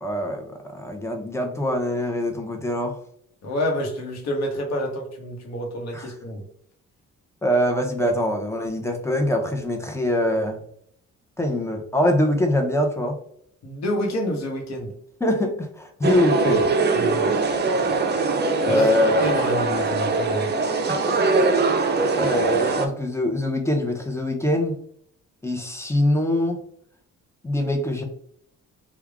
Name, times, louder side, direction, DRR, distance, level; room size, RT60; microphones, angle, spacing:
voice 1, 0.0-3.0 5.9-6.1 7.4-10.6 11.4-13.2 15.2-16.6 18.6-19.3 20.9-21.1 22.1-24.8 25.4-26.6 27.4-28.0, left 1 dB, 10° left, 3 dB, 0.8 m, -23 dB
voice 2, 3.4-6.4 13.6-14.9 16.4-16.7 16.9-17.3 17.9-18.0 18.7-18.9 19.2-20.5, equal, 60° left, 1 dB, 1.1 m, -28 dB
sound 1, 16.0-22.9, right 3 dB, 35° right, 0.6 m, -22 dB
3.4 x 2.4 x 3.5 m, 0.67 s
cardioid pair, 90°, 30 cm